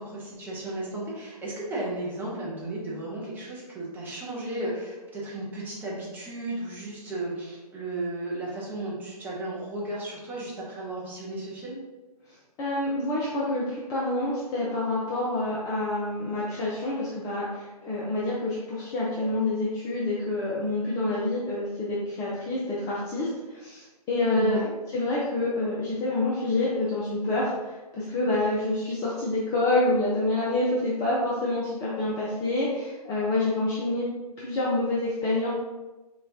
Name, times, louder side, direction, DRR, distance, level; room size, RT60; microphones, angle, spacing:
voice 1, 0.0-11.8 24.3-24.7, right 2 dB, 10° right, -6 dB, 1.1 m, -34 dB
voice 2, 12.6-24.6 24.9-34.1 34.4-35.5, left 2 dB, 15° left, -6 dB, 0.6 m, -27 dB
4.1 x 3.7 x 2.7 m, 1.2 s
figure-of-eight pair, 130°, 20 cm